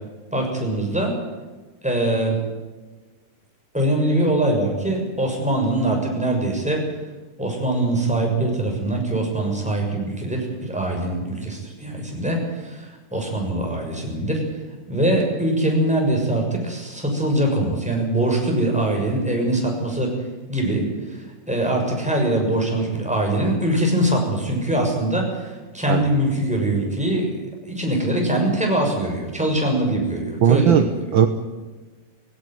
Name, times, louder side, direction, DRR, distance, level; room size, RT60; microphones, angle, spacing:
voice 1, 0.3-1.1 1.8-2.4 3.7-6.8 7.4-14.4 14.9-20.1 20.5-27.3 27.7-30.9, right 1 dB, ahead, 0 dB, 6.5 m, -23 dB
voice 2, 30.4-31.3, right 8 dB, 60° right, 8 dB, 1.3 m, -17 dB
18.5 x 17.0 x 9.4 m, 1.3 s
omnidirectional pair, 3.6 m